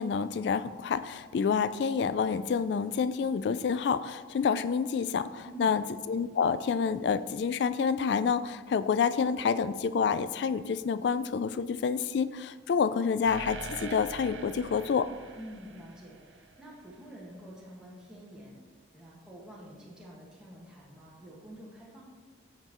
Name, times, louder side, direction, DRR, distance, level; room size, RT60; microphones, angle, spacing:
voice 1, 0.0-15.1, left 6 dB, 60° left, 13 dB, 0.3 m, -28 dB
voice 2, 5.4-5.8 15.3-18.5 18.9-22.0, equal, 5° right, -6 dB, 1.6 m, -48 dB
sound 1, 13.2-16.9, right 4 dB, 80° right, 0.8 m, -44 dB
14.5 x 6.7 x 3.0 m, 1.5 s
head